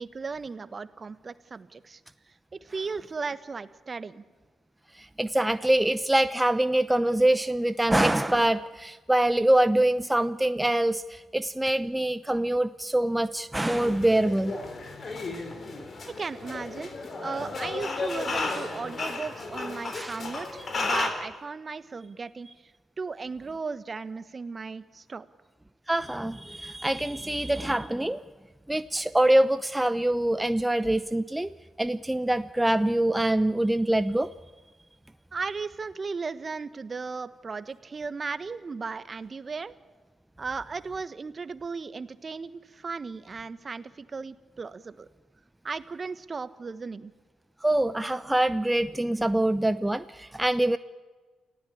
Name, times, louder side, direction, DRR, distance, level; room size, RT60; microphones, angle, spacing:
voice 1, 0.0-2.0 2.5-4.2 16.0-16.9 17.2-22.5 23.0-25.3 35.3-39.7 40.4-45.1 45.6-47.1, right 4 dB, 40° right, 13 dB, 1.3 m, -36 dB
voice 2, 4.9-14.5 19.9-20.1 25.9-28.2 28.7-31.5 31.8-34.3 47.6-50.8, right 1 dB, 10° right, 12 dB, 0.8 m, -24 dB
sound 1, 13.7-21.1, left 3 dB, 50° left, 4.3 m, -33 dB
28.5 x 16.0 x 8.7 m, 1.4 s
hypercardioid pair, 40°, 0 cm